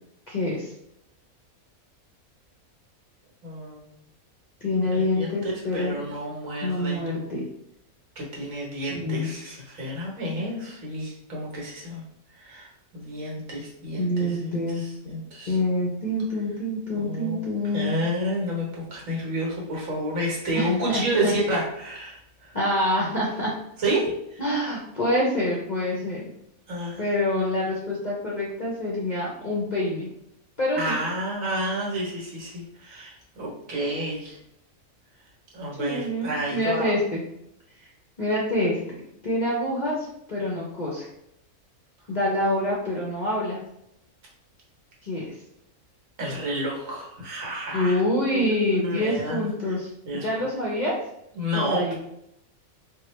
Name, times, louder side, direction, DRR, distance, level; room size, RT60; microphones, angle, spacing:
voice 1, 0.3-0.7 4.6-6.0 6.6-7.5 8.9-9.3 14.0-14.8 15.5-18.0 20.5-21.3 22.5-23.5 24.4-26.2 27.0-30.1 30.6-31.0 35.8-37.2 37.8-37.9 38.2-38.8 39.2-41.1 42.1-43.6 45.0-45.2 47.7-51.0 51.5-51.9, left 1 dB, 45° left, -4 dB, 0.6 m, -26 dB
voice 2, 3.4-3.8 4.8-7.0 8.1-12.0 12.3-15.6 16.9-17.4 17.7-22.6 23.8-24.4 26.7-27.0 30.8-34.4 35.5-36.9 46.2-48.0 48.3-49.7 50.0-50.2 51.3-51.9, right 1 dB, 65° right, -3 dB, 1.5 m, -30 dB
4.4 x 2.3 x 3.1 m, 0.77 s
omnidirectional pair, 1.5 m